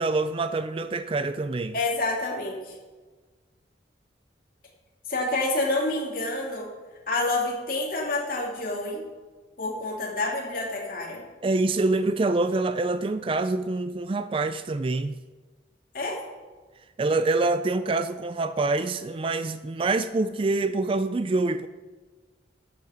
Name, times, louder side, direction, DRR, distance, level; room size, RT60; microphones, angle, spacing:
voice 1, 0.0-1.7 11.4-15.2 17.0-21.7, right 3 dB, 30° right, 0.3 m, -26 dB
voice 2, 1.7-2.8 5.1-6.7 7.1-9.0 9.6-11.2 15.9-16.2, left 2 dB, 50° left, 2.8 m, -28 dB
11.0 x 8.1 x 5.2 m
head